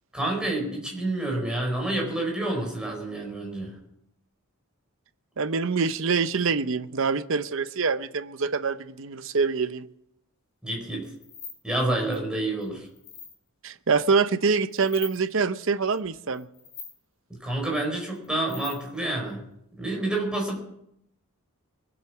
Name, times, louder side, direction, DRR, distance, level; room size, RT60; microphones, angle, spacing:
voice 1, 0.1-3.8 10.6-11.1 11.6-12.9 17.3-19.4 19.8-20.6, right 2 dB, 5° right, -1 dB, 4.7 m, -28 dB
voice 2, 5.4-9.9 13.6-16.5, right 5 dB, 60° right, 12 dB, 0.7 m, -25 dB
sound 1, 11.0-11.6 11.9-12.2 12.6-13.3 14.7-15.2 15.9-16.1 16.3-17.0 18.1-19.0, left 7 dB, 55° left, 4.8 m, -42 dB
22.5 x 8.1 x 6.1 m, 0.75 s
head